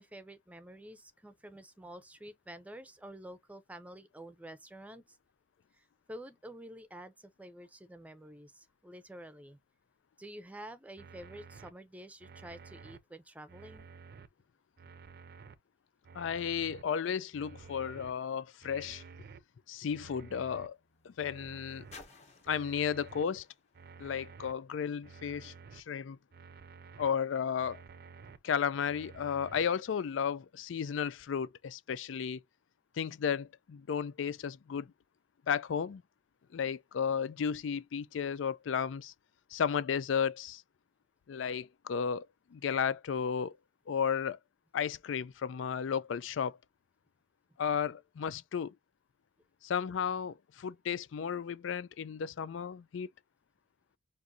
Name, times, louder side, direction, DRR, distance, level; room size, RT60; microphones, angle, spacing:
voice 1, 0.0-5.2 5.7-9.6 10.2-13.9, right 1 dB, 10° right, 0.6 m, -49 dB
sound 1, 11.0-11.7 12.2-13.0 13.5-14.3 14.8-15.5 16.0-16.8 17.3-18.1 18.6-19.4 19.9-20.7 21.2-22.0 22.5-23.2 23.7-24.5 25.0-25.8 26.3-27.1 27.6-28.4 28.9-29.7, right 5 dB, 55° right, 0.5 m, -52 dB
voice 2, 16.1-19.0 19.7-20.8 21.1-21.9 22.4-23.5 24.0-26.2 27.0-27.8 28.4-32.4 33.0-34.9 35.5-36.0 36.5-39.1 39.5-40.6 41.3-42.3 42.5-43.6 43.9-44.4 44.7-46.6 47.6-48.7 49.6-53.1, left 7 dB, 85° left, 0.4 m, -33 dB
sound 2, 20.2-24.9 25.7-25.8, left 3 dB, 35° left, 1.4 m, -60 dB
6.0 x 2.6 x 2.6 m
head